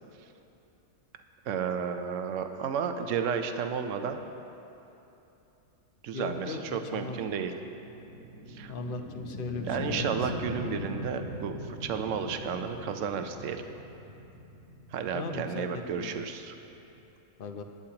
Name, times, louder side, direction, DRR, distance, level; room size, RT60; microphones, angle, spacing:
voice 1, 1.5-4.2 6.0-7.5 8.5-8.7 9.6-13.6 14.9-16.5, right 7 dB, 70° right, 7 dB, 1.0 m, -32 dB
voice 2, 6.1-7.2 8.7-10.3 15.1-16.2 17.4-17.6, left 3 dB, 50° left, 5 dB, 0.8 m, -37 dB
sound 1, 7.3-17.1, equal, 80° left, 2.1 m, -41 dB
19.5 x 10.0 x 2.9 m, 2.9 s
omnidirectional pair, 1.4 m